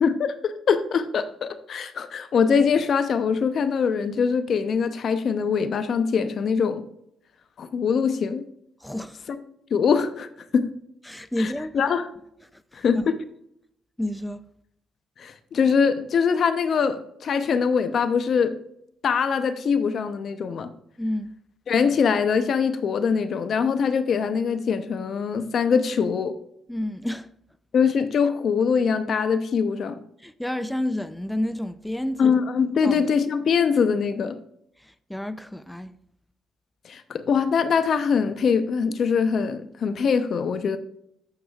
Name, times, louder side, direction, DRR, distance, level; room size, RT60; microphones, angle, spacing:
voice 1, 0.0-6.8 7.6-8.4 9.7-10.3 10.5-10.7 11.4-12.1 12.7-13.2 15.2-18.6 19.0-20.7 21.7-26.4 27.7-30.0 32.2-34.4 36.9-40.8, left 6 dB, 55° left, 0.6 m, -23 dB
voice 2, 8.8-9.3 11.1-11.8 12.5-13.0 14.0-14.4 21.0-21.3 26.7-27.3 30.2-32.4 32.8-33.0 34.8-35.9, left 1 dB, 5° left, 0.4 m, -30 dB
14.5 x 4.8 x 2.4 m
cardioid pair, 90°, 0 cm